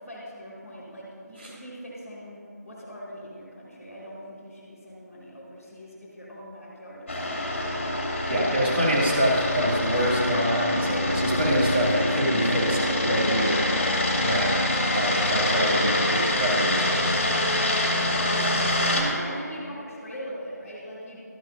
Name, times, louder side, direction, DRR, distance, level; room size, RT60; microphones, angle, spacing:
voice 1, 0.1-7.9 17.8-18.1 18.9-21.2, equal, 5° right, -17 dB, 1.9 m, -40 dB
sound 1, 7.1-19.0, left 1 dB, 45° left, 2.4 m, -25 dB
voice 2, 8.3-13.7 14.1-14.6 14.9-17.2, equal, 40° right, -5 dB, 2.8 m, -26 dB
16.5 x 13.0 x 2.7 m, 2.2 s
figure-of-eight pair, 165°, 9 cm